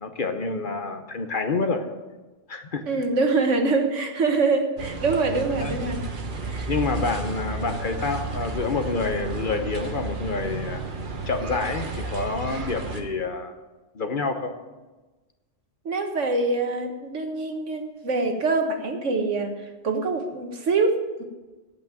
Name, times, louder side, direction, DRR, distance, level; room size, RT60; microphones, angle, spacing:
voice 1, 0.0-1.8 2.5-2.8 5.6-5.8 6.7-10.8 11.3-13.5 13.9-14.5, left 3 dB, 45° left, 7 dB, 1.0 m, -28 dB
voice 2, 2.9-6.0 6.4-6.7 15.9-19.5 19.8-21.2, right 3 dB, 80° right, 4 dB, 1.7 m, -24 dB
sound 1, 4.8-13.0, right 3 dB, 45° right, 1.2 m, -32 dB
8.6 x 8.4 x 8.9 m, 1.2 s
omnidirectional pair, 1.2 m